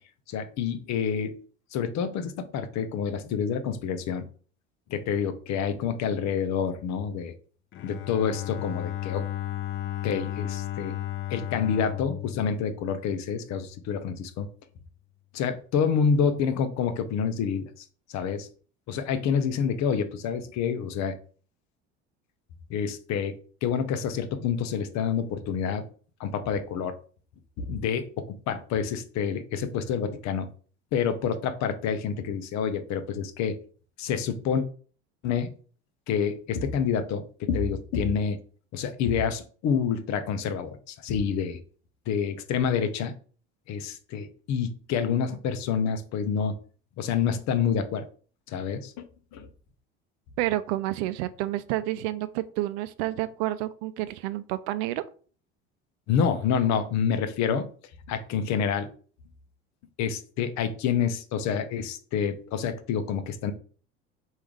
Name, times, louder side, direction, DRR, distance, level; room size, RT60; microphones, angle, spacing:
voice 1, 0.3-1.4 1.7-4.3 4.9-7.3 7.8-9.3 10.0-11.0 11.3-14.5 15.3-18.5 18.9-21.2 22.7-23.4 23.6-25.8 26.2-27.0 27.6-30.5 30.9-33.6 34.0-34.6 35.2-35.5 36.1-38.4 38.7-41.6 42.1-43.1 43.7-46.5 47.0-48.1 48.5-49.1 49.3-49.5 56.1-57.7 58.1-58.9 60.0-63.5, left 7 dB, 55° left, 10 dB, 0.8 m, -28 dB
Bowed string instrument, 7.7-13.6, left 13 dB, 40° left, 0.4 m, -34 dB
voice 2, 50.4-55.0, right 15 dB, 70° right, 14 dB, 0.5 m, -29 dB
3.6 x 2.7 x 4.6 m, 0.42 s
hypercardioid pair, 75°, 33 cm